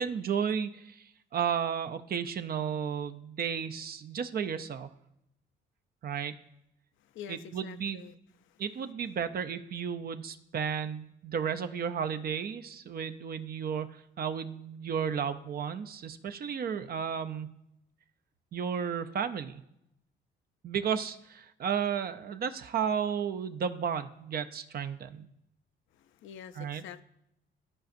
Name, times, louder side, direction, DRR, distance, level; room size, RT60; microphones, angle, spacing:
voice 1, 0.0-4.9 6.0-6.3 7.3-8.1 8.6-17.5 18.5-19.6 20.6-25.3 26.5-26.8, right 7 dB, 50° right, 11 dB, 0.5 m, -33 dB
voice 2, 7.1-8.1 8.4-8.6 25.9-27.1, left 9 dB, 75° left, 12 dB, 0.5 m, -47 dB
13.0 x 5.0 x 2.6 m, 0.80 s
cardioid pair, 90°, 20 cm